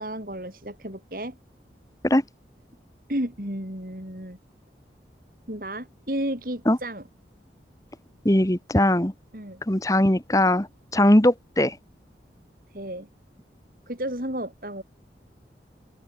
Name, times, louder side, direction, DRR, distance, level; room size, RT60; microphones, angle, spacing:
voice 1, 0.0-1.4 3.1-4.4 5.5-7.0 9.3-9.6 12.7-13.1 13.9-14.8, right 1 dB, 50° right, 6.1 m, -32 dB
voice 2, 8.2-9.1 9.7-10.7 10.9-11.8, left 1 dB, 20° left, 1.5 m, -20 dB
open air
head